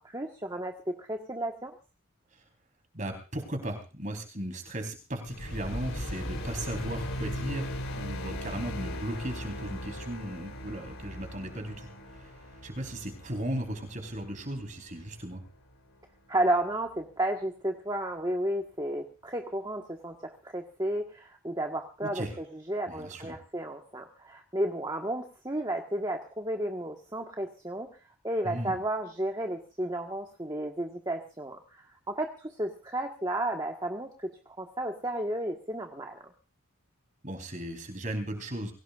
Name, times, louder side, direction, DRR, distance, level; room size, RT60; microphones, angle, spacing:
voice 1, 0.0-1.7 16.3-27.9 28.2-36.3, right 1 dB, 20° right, 2 dB, 1.5 m, -33 dB
voice 2, 2.9-15.4 22.0-22.3 22.9-23.4 28.4-28.8 37.2-38.7, right 1 dB, 35° right, 5 dB, 4.2 m, -36 dB
sound 1, 5.3-15.7, equal, 70° left, 3.8 m, -39 dB
25.0 x 18.0 x 2.6 m, 0.36 s
head